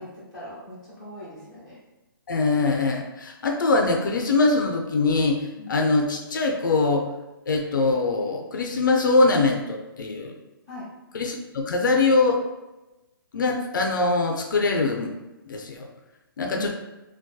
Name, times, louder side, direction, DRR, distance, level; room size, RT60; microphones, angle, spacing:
voice 1, 0.0-1.8 5.6-5.7 10.7-10.9 16.5-16.7, left 1 dB, ahead, -14 dB, 0.6 m, -40 dB
voice 2, 2.3-7.1 7.5-10.3 11.1-12.4 13.3-15.1 15.5-15.9 16.4-16.7, left 3 dB, 60° left, 2 dB, 0.4 m, -23 dB
2.6 x 2.2 x 2.2 m, 1.0 s
hypercardioid pair, 175°, 12 cm